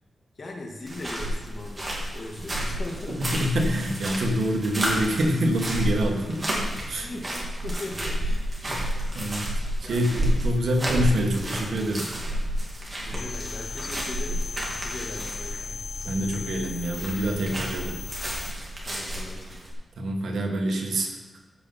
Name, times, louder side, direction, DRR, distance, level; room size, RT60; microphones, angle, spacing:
voice 1, 0.4-3.2 7.0-8.9 9.8-10.1 10.5-10.7 13.0-15.8 18.8-19.6, left 2 dB, 50° left, 0 dB, 2.2 m, -39 dB
sound 1, 0.9-19.7, equal, 30° right, 2.9 m, -31 dB
voice 2, 3.2-7.1 8.6-8.8 9.1-12.1 16.0-18.0 20.0-21.2, equal, 75° right, 2 dB, 1.7 m, -26 dB
sound 2, 13.1-18.5, left 5 dB, 80° left, 0.4 m, -36 dB
15.0 x 5.5 x 5.6 m, 1.2 s
wide cardioid pair, 115°, 0 cm